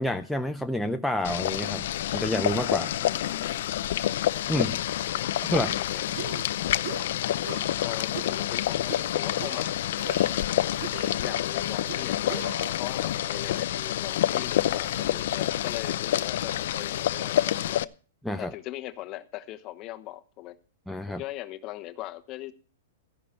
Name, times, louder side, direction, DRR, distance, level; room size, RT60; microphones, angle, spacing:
voice 1, 0.0-2.9 4.5-4.8 5.4-5.8 18.2-18.5 20.9-21.2, left 1 dB, ahead, 3 dB, 0.5 m, -29 dB
Boiling, 1.2-17.8, left 12 dB, 65° left, 0.6 m, -28 dB
voice 2, 3.0-3.6 5.1-5.3 5.8-6.0 7.8-9.7 11.2-12.5 12.8-17.8 18.4-20.6 21.1-22.5, left 16 dB, 30° left, 9 dB, 1.1 m, -40 dB
sound 1, 5.6-5.8 6.1-6.5 6.8-7.1 7.4-7.8 8.1-8.4 8.9-9.0 9.3-10.5 10.8-11.4 11.9-12.8, right 6 dB, 60° right, 2.5 m, -39 dB
14.5 x 11.0 x 4.5 m, 0.39 s
hypercardioid pair, 150°, 0 cm